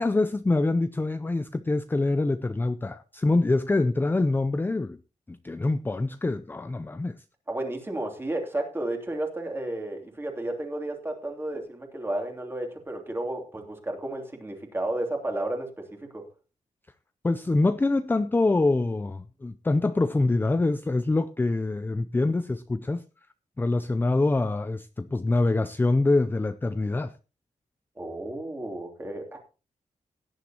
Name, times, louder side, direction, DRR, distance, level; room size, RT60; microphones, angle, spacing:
voice 1, 0.0-5.0 5.3-7.2 17.2-23.0 23.6-27.1, left 2 dB, 15° left, 11 dB, 0.5 m, -25 dB
voice 2, 7.5-16.2 28.0-29.4, right 1 dB, 15° right, 2 dB, 3.0 m, -32 dB
17.0 x 10.5 x 2.9 m, 0.32 s
wide cardioid pair, 160°, 13 cm